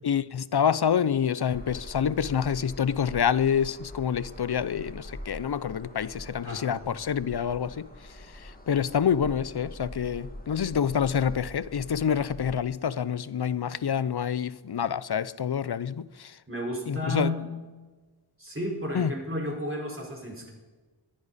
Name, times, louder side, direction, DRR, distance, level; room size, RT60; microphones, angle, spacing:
voice 1, 0.0-16.4 16.9-17.3 18.9-19.1, left 8 dB, 50° left, 0.6 m, -27 dB
sound 1, 1.5-12.6, equal, 15° left, 2.0 m, -44 dB
voice 2, 6.4-6.8 16.5-17.5 18.4-20.5, equal, 25° right, 4.7 m, -32 dB
23.0 x 10.0 x 4.1 m
wide cardioid pair, 60°, 50 cm